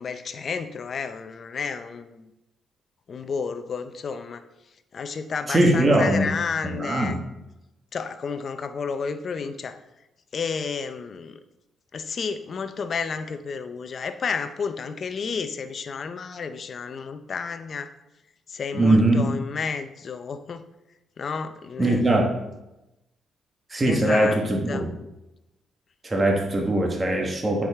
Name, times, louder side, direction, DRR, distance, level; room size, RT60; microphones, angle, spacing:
voice 1, 0.0-2.3 3.1-4.4 4.9-7.2 7.9-9.8 10.3-11.4 11.9-17.9 18.5-20.6 21.2-22.2 23.8-24.4 24.7-24.9, left 5 dB, 50° left, 10 dB, 0.6 m, -31 dB
voice 2, 5.5-6.3 6.6-7.2 18.7-19.3 21.8-22.3 23.7-24.9 26.0-27.7, right 1 dB, 25° right, 0 dB, 1.4 m, -21 dB
9.0 x 4.9 x 3.6 m, 0.93 s
cardioid pair, 80°, 0 cm